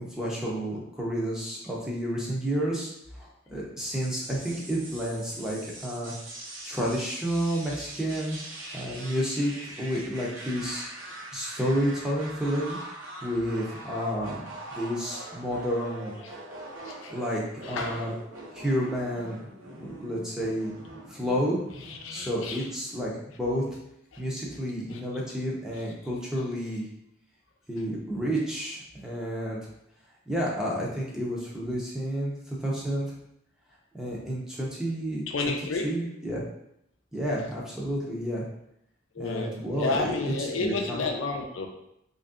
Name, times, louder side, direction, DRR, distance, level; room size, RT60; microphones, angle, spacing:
voice 1, 0.0-6.1 6.6-8.4 8.7-12.8 13.2-16.2 17.1-18.1 18.5-19.5 19.8-20.7 21.1-21.6 22.1-23.6 24.2-26.9 27.7-29.6 30.3-33.1 33.9-35.5 35.8-36.4 37.1-38.4 39.2-41.0, equal, 5° right, -4 dB, 0.7 m, -30 dB
sound 1, 4.0-22.4, right 2 dB, 85° right, 1.0 m, -43 dB
voice 2, 17.6-18.1 21.9-22.6 24.1-24.2 24.9-25.0 35.3-35.9 39.1-41.7, left 3 dB, 80° left, 3 dB, 0.5 m, -31 dB
3.1 x 2.6 x 3.6 m, 0.78 s
head